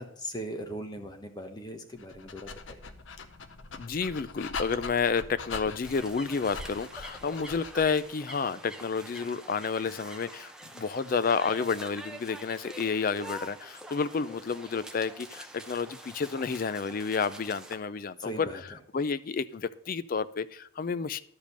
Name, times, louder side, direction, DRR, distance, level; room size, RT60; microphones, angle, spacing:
voice 1, 0.0-2.8 18.2-18.6, equal, 20° left, 5 dB, 1.1 m, -39 dB
Dog, 2.0-8.1, left 4 dB, 65° left, 0.7 m, -42 dB
voice 2, 3.8-18.5 18.9-21.2, left 5 dB, 45° left, 15 dB, 0.4 m, -30 dB
sound 1, 5.8-17.8, right 1 dB, 5° right, 0.7 m, -46 dB
12.0 x 5.1 x 6.7 m, 0.66 s
head